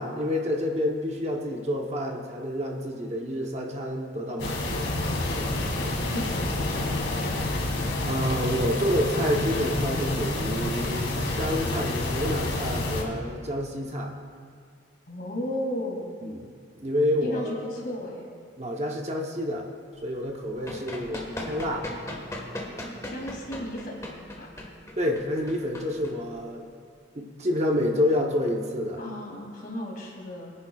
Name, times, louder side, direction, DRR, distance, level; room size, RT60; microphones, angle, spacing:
voice 1, 0.0-4.9 8.0-14.1 16.2-16.5 16.8-17.7 18.6-19.7 20.0-21.9 25.0-26.6 27.1-29.0, left 1 dB, 35° right, 1 dB, 0.9 m, -28 dB
sound 1, 4.4-13.0, left 2 dB, 70° left, 2.0 m, -28 dB
voice 2, 5.4-7.3 15.1-16.0 17.2-18.3 20.5-21.7 23.0-24.0 24.4-24.5 29.0-30.5, equal, 45° left, -2 dB, 2.5 m, -35 dB
Run, 20.6-26.7, left 1 dB, 15° left, 1.4 m, -38 dB
22.5 x 9.9 x 2.4 m, 2.1 s
head